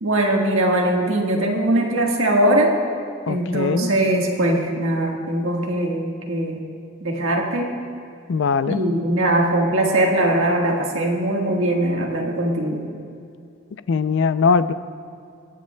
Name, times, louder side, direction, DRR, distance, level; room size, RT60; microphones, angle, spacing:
voice 1, 0.0-2.8 3.3-6.6 7.0-7.7 8.7-12.9, right 1 dB, 85° right, 0 dB, 1.5 m, -21 dB
voice 2, 3.3-3.9 8.3-8.8 13.9-14.7, left 5 dB, 65° left, 14 dB, 0.4 m, -20 dB
22.0 x 9.4 x 2.2 m, 2.5 s
head